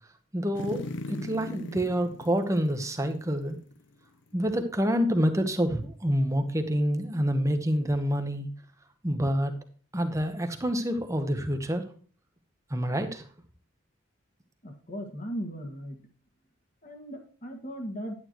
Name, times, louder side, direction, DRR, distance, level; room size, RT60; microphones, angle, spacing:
voice 1, 0.3-3.6 4.3-8.5 9.0-9.5 9.9-11.9 12.7-13.3, equal, 15° right, 7 dB, 1.0 m, -27 dB
sound 1, 0.5-3.9 4.3-4.4, left 2 dB, 65° left, 0.6 m, -40 dB
voice 2, 14.6-16.0 16.8-18.1, equal, 40° left, 3 dB, 1.8 m, -37 dB
10.5 x 9.3 x 3.1 m, 0.43 s
head